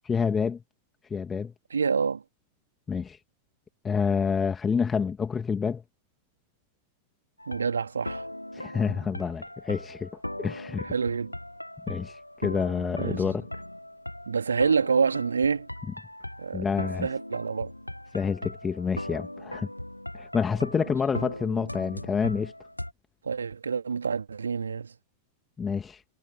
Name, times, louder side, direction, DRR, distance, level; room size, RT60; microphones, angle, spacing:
voice 1, 0.1-0.6 1.1-1.5 2.9-3.2 3.8-5.8 8.5-10.1 10.4-10.9 11.9-13.5 16.5-17.1 18.1-19.7 20.1-22.5 25.6-26.0, left 6 dB, 15° left, 1.9 m, -28 dB
voice 2, 1.7-2.2 7.5-8.2 10.8-11.3 12.9-13.2 14.3-15.7 16.4-16.7 17.0-17.7 23.2-24.9, right 5 dB, 75° right, 2.3 m, -27 dB
sound 1, 7.4-22.9, left 1 dB, 85° left, 1.8 m, -39 dB
figure-of-eight pair, 90°, 0 cm